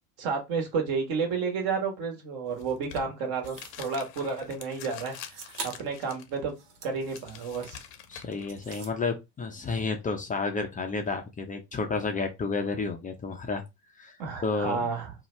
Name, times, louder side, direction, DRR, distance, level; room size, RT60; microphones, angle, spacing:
voice 1, 0.2-6.5 6.8-7.8 14.2-15.1, right 5 dB, 50° right, 1.3 m, -31 dB
sound 1, 2.5-8.6, left 8 dB, 55° left, 0.8 m, -46 dB
sound 2, 3.4-3.8 5.1-5.9 6.4-7.9 8.3-9.0, right 5 dB, 75° right, 1.0 m, -43 dB
voice 2, 8.1-13.6 14.0-14.2 14.4-14.9, left 4 dB, 20° left, 0.5 m, -31 dB
2.7 x 2.1 x 3.1 m
hypercardioid pair, 80°, 47 cm